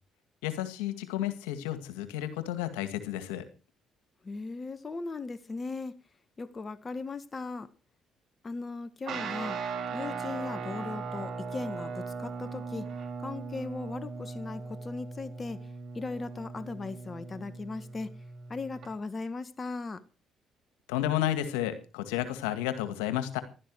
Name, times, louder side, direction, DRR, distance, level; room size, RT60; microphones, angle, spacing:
voice 1, 0.4-3.5 20.9-23.4, left 12 dB, 85° left, 2.0 m, -32 dB
voice 2, 4.2-5.9 6.4-7.7 8.4-12.9 13.2-18.1 18.5-20.0, left 3 dB, 35° left, 1.5 m, -38 dB
Guitar, 9.1-18.9, right 5 dB, 60° right, 4.3 m, -38 dB
15.5 x 12.5 x 4.8 m
hypercardioid pair, 55°, 0 cm